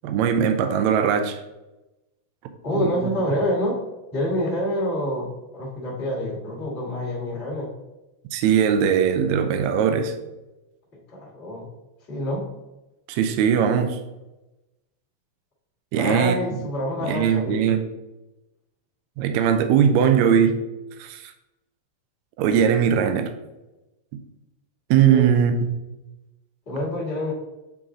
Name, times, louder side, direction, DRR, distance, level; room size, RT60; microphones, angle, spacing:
voice 1, 0.0-1.4 2.7-2.9 8.3-10.1 13.1-14.0 15.9-16.3 17.1-17.8 19.2-20.6 21.0-21.3 22.4-23.3 24.9-25.8, right 8 dB, 75° right, 7 dB, 1.9 m, -20 dB
voice 2, 2.6-3.8 4.1-7.7 11.1-11.7 12.1-12.5 15.9-17.7 25.1-25.3 26.7-27.3, left 1 dB, 25° left, -6 dB, 1.6 m, -27 dB
7.9 x 4.6 x 3.7 m, 1.0 s
omnidirectional pair, 3.4 m